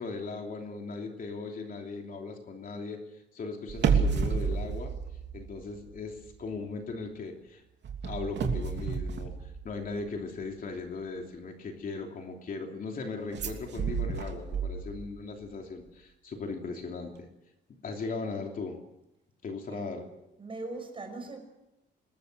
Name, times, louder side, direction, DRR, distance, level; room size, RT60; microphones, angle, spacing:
voice 1, 0.0-3.0 3.3-4.9 5.3-7.6 8.0-17.3 17.8-18.8 19.4-20.0, left 4 dB, 45° left, 2 dB, 3.0 m, -38 dB
sound 1, 3.7-6.0 6.2-6.5 7.8-10.1 13.3-15.2 15.5-15.6, right 5 dB, 60° right, 3.0 m, -31 dB
voice 2, 19.7-20.1 20.4-21.4, right 2 dB, 25° right, 4 dB, 5.9 m, -40 dB
25.5 x 21.0 x 6.7 m, 0.91 s
wide cardioid pair, 175°, 20 cm